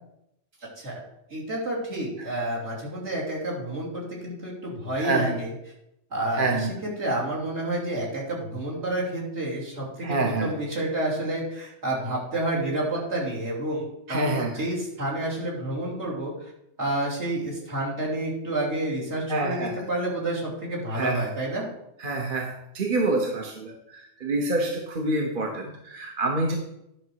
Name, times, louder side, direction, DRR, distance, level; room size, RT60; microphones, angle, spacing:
voice 1, 1.3-5.5 6.1-16.5 16.8-21.7, right 1 dB, 65° right, -6 dB, 3.4 m, -29 dB
voice 2, 5.0-5.4 6.4-6.7 10.0-10.5 14.1-14.5 19.3-19.7 20.9-21.3 22.0-26.6, right 2 dB, 45° right, 1 dB, 1.1 m, -27 dB
10.5 x 5.9 x 4.6 m, 0.81 s
omnidirectional pair, 1.2 m